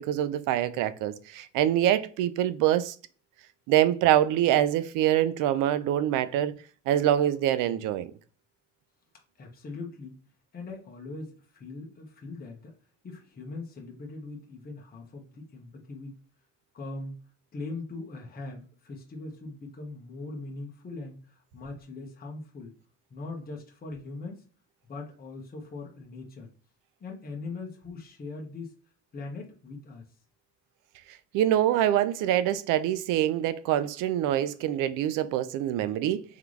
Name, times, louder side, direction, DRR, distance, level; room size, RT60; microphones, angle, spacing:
voice 1, 0.0-3.0 3.7-6.5 6.9-8.1 31.3-36.2, right 12 dB, 80° right, 0.6 m, -25 dB
voice 2, 9.4-10.2 10.5-12.7 13.0-16.2 16.7-17.2 17.5-22.7 23.1-24.4 24.8-26.5 27.0-28.7 29.1-30.0, left 3 dB, 30° left, 1.2 m, -41 dB
3.8 x 3.5 x 3.2 m
cardioid pair, 130°, 31 cm